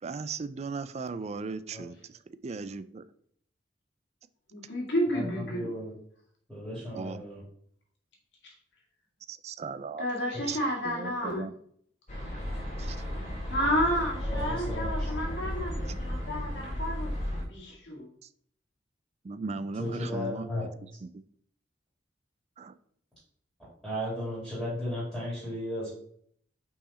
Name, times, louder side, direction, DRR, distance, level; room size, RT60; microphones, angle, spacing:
voice 1, 0.0-3.1 6.9-7.2 9.3-10.1 10.4-11.5 12.8-13.0 15.9-16.0 18.2-18.3 19.2-20.5 21.0-21.2 22.6-22.8, right 4 dB, 35° right, 14 dB, 0.4 m, -37 dB
voice 2, 4.5-5.7 10.0-11.5 13.5-18.1, equal, 70° left, -1 dB, 2.0 m, -31 dB
voice 3, 5.1-5.9 6.5-7.4 10.3-10.4 14.3-15.1 19.8-20.7 23.8-25.9, left 1 dB, ahead, -8 dB, 2.7 m, -35 dB
sound 1, 12.1-17.4, equal, 40° left, 2.2 m, -34 dB
5.6 x 4.8 x 4.2 m, 0.64 s
head